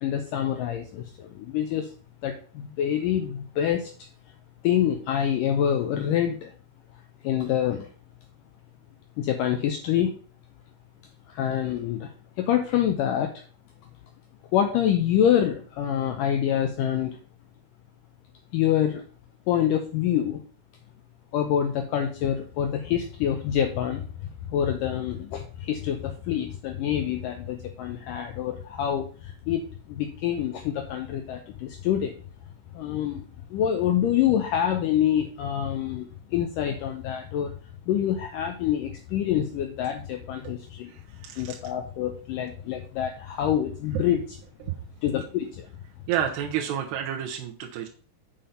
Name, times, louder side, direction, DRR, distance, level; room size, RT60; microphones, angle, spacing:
voice 1, 0.0-1.9 2.2-3.9 4.6-6.5 7.2-7.9 9.2-10.2 11.3-12.1 12.4-13.4 14.5-17.2 18.5-19.0 19.5-20.4 21.3-24.1 24.5-32.1 32.7-37.5 37.9-40.9 41.4-44.4 45.0-45.6, left 10 dB, 90° left, 5 dB, 1.9 m, -26 dB
voice 2, 40.9-41.6 44.6-44.7 46.1-47.9, right 10 dB, 80° right, 2 dB, 3.0 m, -30 dB
7.5 x 5.1 x 5.6 m, 0.41 s
omnidirectional pair, 4.8 m